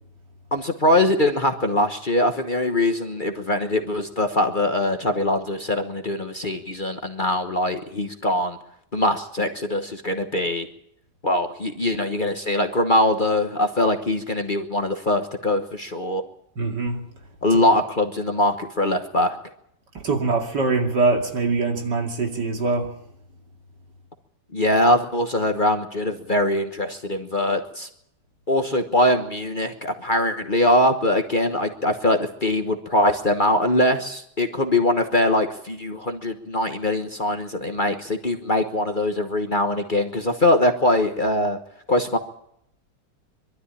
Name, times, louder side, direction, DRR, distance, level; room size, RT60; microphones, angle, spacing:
voice 1, 0.5-8.6 8.9-10.7 11.2-16.2 17.4-19.4 24.5-27.9 28.5-41.6 41.9-42.2, left 1 dB, 30° left, 1.2 m, -22 dB
voice 2, 16.6-17.0 20.0-22.9, right 3 dB, 70° right, 3.1 m, -23 dB
22.5 x 13.0 x 10.0 m
omnidirectional pair, 1.9 m